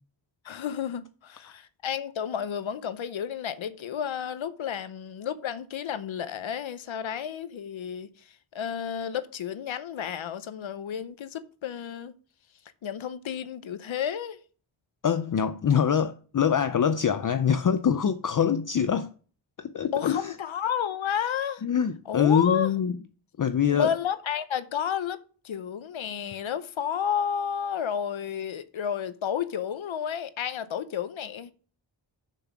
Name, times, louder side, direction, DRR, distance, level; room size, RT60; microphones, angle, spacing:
voice 1, 0.4-12.1 12.8-14.4 19.9-21.6 22.1-22.7 23.7-25.2 25.4-31.5, left 8 dB, 80° left, 0.8 m, -31 dB
voice 2, 15.0-19.1 19.6-20.3 21.6-22.9 23.4-23.9, left 8 dB, 45° left, 0.5 m, -24 dB
6.9 x 5.9 x 6.0 m
wide cardioid pair, 145°, 46 cm